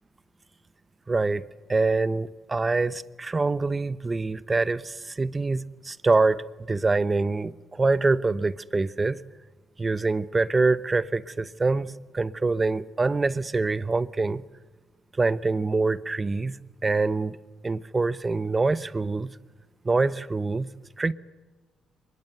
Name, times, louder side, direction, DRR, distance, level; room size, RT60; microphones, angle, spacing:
voice 1, 1.1-1.4 1.7-6.4 6.7-9.2 9.8-14.4 15.2-16.6 16.8-17.4 17.6-19.3 19.8-20.7 21.0-21.1, right 3 dB, 25° right, 0.9 m, -25 dB
24.0 x 21.5 x 8.0 m
cardioid pair, 90°, 0 cm